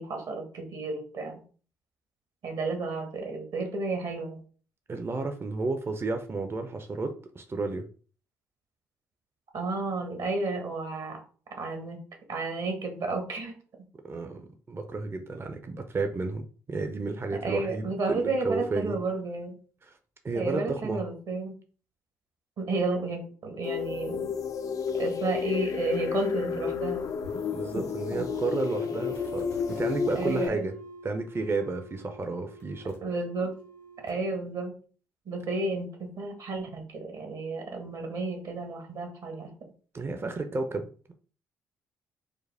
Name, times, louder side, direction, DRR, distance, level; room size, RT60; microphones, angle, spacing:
voice 1, 0.0-1.4 2.4-4.4 9.5-11.2 11.5-12.0 12.3-13.5 17.3-19.5 20.3-21.6 22.6-24.3 25.0-27.0 27.7-27.8 28.1-28.3 30.1-30.7 33.0-33.6 34.0-34.7 35.3-39.5, right 3 dB, 60° right, 4 dB, 1.2 m, -32 dB
voice 2, 4.9-7.8 14.0-19.0 19.9-20.0 20.2-21.0 27.5-30.7 31.0-33.0 39.9-41.1, right 3 dB, 30° right, 6 dB, 0.6 m, -32 dB
sound 1, 23.6-30.5, left 7 dB, 45° left, 0.4 m, -31 dB
sound 2, 26.9-34.2, equal, 85° left, 1.9 m, -46 dB
4.9 x 2.1 x 3.4 m, 0.40 s
hypercardioid pair, 45°, 8 cm